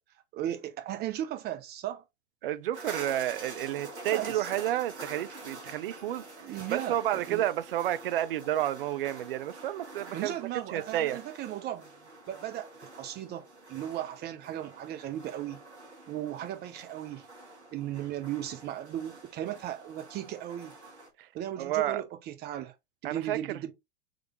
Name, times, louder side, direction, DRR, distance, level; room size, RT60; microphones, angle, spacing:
voice 1, 0.3-2.0 4.1-4.5 6.4-7.4 10.1-11.9 12.3-12.7 12.9-15.6 16.1-17.3 17.7-20.7 21.3-22.7 23.0-23.7, right 12 dB, 30° right, 0.9 m, -36 dB
voice 2, 2.4-6.2 6.7-11.2 21.2-21.3 21.6-22.0 23.0-23.4, right 12 dB, 55° right, 0.5 m, -31 dB
sound 1, 2.7-21.1, right 2 dB, 80° right, 1.4 m, -47 dB
3.8 x 3.3 x 3.0 m
figure-of-eight pair, 90°, 33 cm